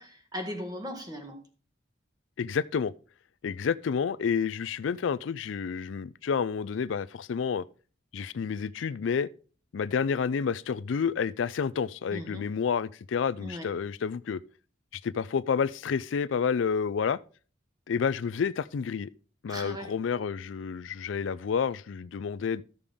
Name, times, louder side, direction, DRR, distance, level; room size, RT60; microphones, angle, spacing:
voice 1, 0.0-1.4 12.1-12.5 13.4-13.7 19.5-19.9, equal, 20° right, 1.7 m, -38 dB
voice 2, 2.4-2.9 3.4-7.6 8.1-9.3 9.7-14.4 15.0-17.2 17.9-19.1 19.4-22.6, left 6 dB, 85° left, 0.4 m, -29 dB
13.0 x 6.8 x 3.6 m
head